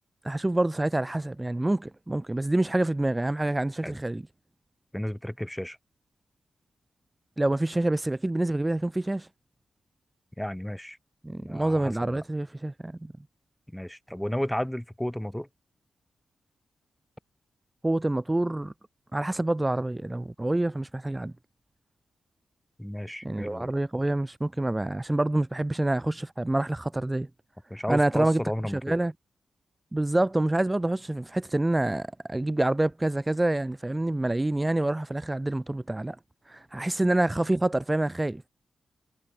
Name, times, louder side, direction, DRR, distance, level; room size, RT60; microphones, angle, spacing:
voice 1, 0.2-4.2 7.4-9.3 11.2-13.1 17.8-18.7 19.1-21.3 23.2-27.3 27.9-28.4 28.7-29.1 29.9-36.2 36.5-38.5, right 1 dB, 15° right, 2.1 m, -27 dB
voice 2, 4.9-5.8 10.4-11.0 11.4-12.2 13.7-15.5 22.8-23.7 27.7-29.0, equal, 5° left, 1.3 m, -33 dB
cardioid pair, 70°, 0 cm